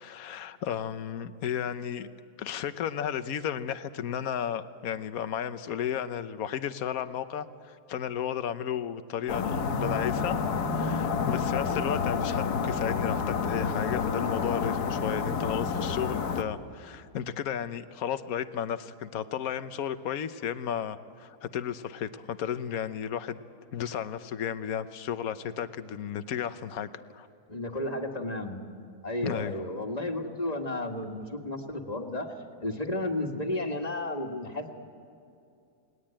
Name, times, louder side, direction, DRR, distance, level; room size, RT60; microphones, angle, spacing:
voice 1, 0.0-2.1 2.4-10.4 10.7-23.4 23.7-27.3 29.2-29.6, left 9 dB, 70° left, 11 dB, 1.3 m, -33 dB
sound 1, 9.3-16.4, left 5 dB, 85° left, 1.8 m, -29 dB
voice 2, 27.5-28.6 29.0-32.3 32.6-34.7, left 1 dB, 25° left, 3 dB, 1.9 m, -33 dB
29.0 x 20.0 x 8.9 m, 2.6 s
omnidirectional pair, 1.6 m